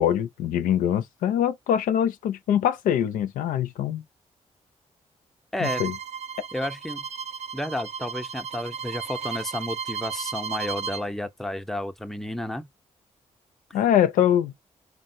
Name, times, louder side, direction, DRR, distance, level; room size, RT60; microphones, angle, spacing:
voice 1, 0.0-4.0 5.6-5.9 13.7-14.5, left 10 dB, 85° left, 0.5 m, -23 dB
Bowed string instrument, 5.6-11.0, right 6 dB, 55° right, 0.4 m, -34 dB
voice 2, 6.5-7.0 7.5-12.7, left 1 dB, 5° left, 0.6 m, -31 dB
3.2 x 2.1 x 2.5 m
supercardioid pair, 50°, 14 cm